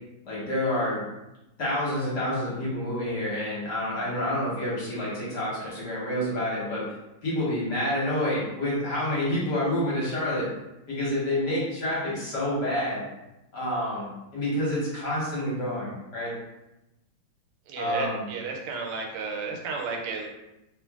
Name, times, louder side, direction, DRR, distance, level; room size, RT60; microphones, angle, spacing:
voice 1, 0.2-1.0 1.6-6.9 7.2-10.5 10.9-13.0 13.5-16.3 17.8-18.2, left 1 dB, 60° left, -7 dB, 1.4 m, -28 dB
voice 2, 17.7-20.3, right 4 dB, 90° right, 1 dB, 1.5 m, -33 dB
3.3 x 2.4 x 2.3 m, 0.94 s
omnidirectional pair, 2.4 m